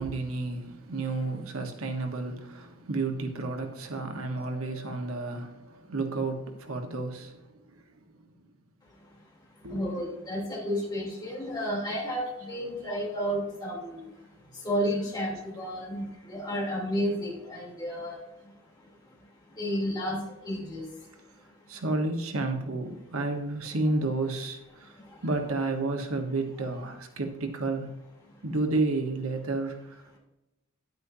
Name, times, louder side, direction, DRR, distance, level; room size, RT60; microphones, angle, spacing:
voice 1, 0.0-5.6 5.9-7.4 9.6-9.9 21.7-24.9 25.2-27.9 28.4-29.8, right 2 dB, 90° right, 5 dB, 1.3 m, -31 dB
Mallet percussion, 4.4-6.4, left 2 dB, 5° right, 2.4 m, -52 dB
voice 2, 9.6-14.1 14.5-21.8 24.9-25.2 28.3-28.4, equal, 20° left, -4 dB, 3.2 m, -33 dB
10.0 x 8.8 x 2.7 m, 0.96 s
head